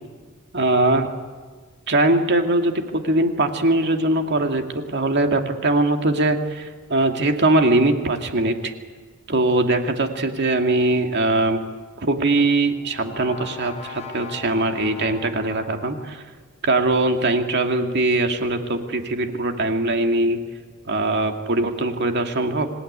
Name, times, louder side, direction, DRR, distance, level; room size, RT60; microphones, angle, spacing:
voice 1, 0.5-1.1 1.9-8.7 9.3-11.6 12.0-16.2 16.6-20.4 20.8-22.7, right 2 dB, 55° right, 5 dB, 2.2 m, -21 dB
Brass instrument, 12.2-16.3, left 5 dB, 30° left, 4.7 m, -40 dB
26.5 x 17.0 x 9.9 m, 1.5 s
head